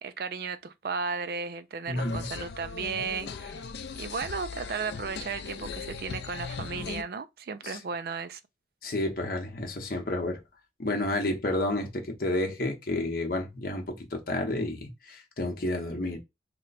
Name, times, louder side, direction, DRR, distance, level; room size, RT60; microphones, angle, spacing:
voice 1, 0.0-3.6 4.0-8.4, right 5 dB, 55° right, 0.4 m, -35 dB
voice 2, 1.9-2.3 7.6-7.8 8.8-10.4 10.8-16.2, left 1 dB, 50° left, 0.8 m, -30 dB
sound 1, 2.0-7.0, left 5 dB, 70° left, 0.4 m, -38 dB
3.0 x 2.2 x 4.0 m
head